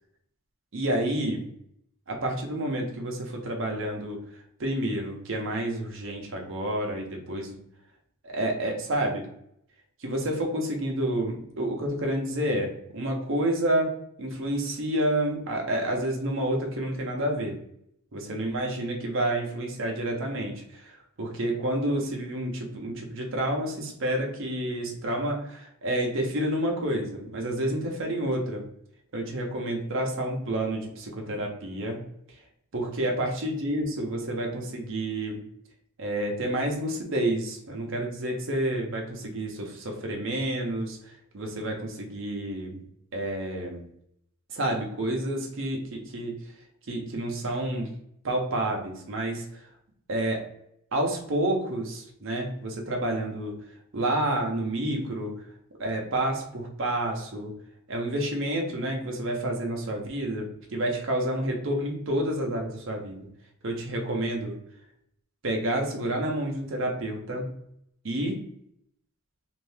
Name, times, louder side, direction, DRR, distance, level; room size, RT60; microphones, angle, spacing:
voice 1, 0.7-1.5 2.1-7.6 8.2-9.3 10.0-17.6 18.1-28.7 29.1-32.4 32.7-35.4 36.0-42.8 43.1-43.8 44.5-46.4 46.9-47.9 48.2-49.7 50.1-50.5 50.9-53.6 53.9-55.4 55.8-57.6 57.9-63.3 63.6-64.6 65.4-67.5 68.0-68.5, right 1 dB, 60° right, 1 dB, 0.7 m, -29 dB
2.7 x 2.6 x 3.3 m, 0.73 s
head